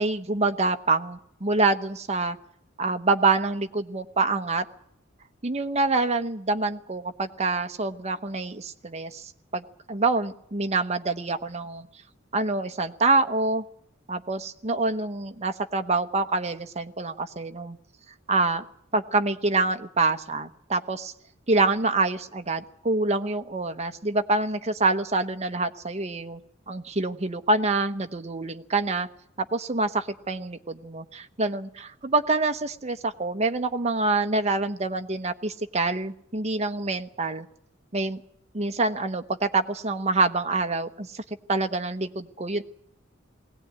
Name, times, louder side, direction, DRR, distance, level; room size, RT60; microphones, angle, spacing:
voice 1, 0.0-2.4 2.8-4.6 5.4-11.9 12.3-13.6 14.1-17.8 18.3-18.6 18.9-21.1 21.5-26.4 26.7-29.1 29.5-37.5 37.9-38.2 38.5-41.2 41.5-42.6, right 3 dB, 35° right, 7 dB, 1.0 m, -26 dB
20.5 x 17.5 x 9.6 m, 0.74 s
head